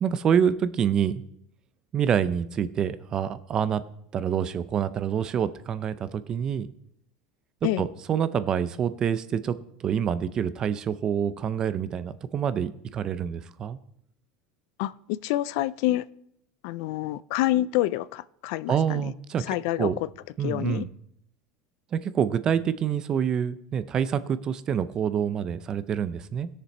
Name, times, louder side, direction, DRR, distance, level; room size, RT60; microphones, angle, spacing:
voice 1, 0.0-1.2 1.9-3.8 4.1-6.7 7.6-13.8 18.7-19.4 19.8-20.0 20.4-20.9 21.9-26.5, right 8 dB, 30° right, 0.6 m, -27 dB
voice 2, 14.8-16.0 16.6-19.1 19.5-19.9 20.4-20.9, left 15 dB, 65° left, 0.4 m, -27 dB
17.5 x 6.8 x 4.2 m
supercardioid pair, 145°, 2 cm